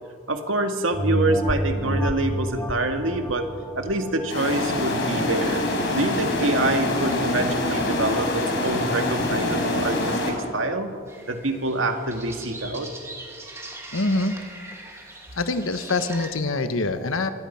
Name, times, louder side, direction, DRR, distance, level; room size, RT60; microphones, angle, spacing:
voice 1, 0.3-3.5 3.8-5.7 5.9-10.9 11.3-12.9, right 2 dB, 70° right, 5 dB, 2.1 m, -26 dB
sound 1, 0.9-5.9 6.4-6.5, equal, 10° left, 1.6 m, -29 dB
sound 2, 4.3-10.3, left 1 dB, 55° left, 4.7 m, -25 dB
sound 3, 11.1-16.3, right 2 dB, 15° right, 2.7 m, -41 dB
voice 2, 13.9-14.4 15.4-17.3, left 2 dB, 75° left, 9 dB, 1.3 m, -24 dB
26.0 x 19.5 x 5.8 m, 2.2 s
head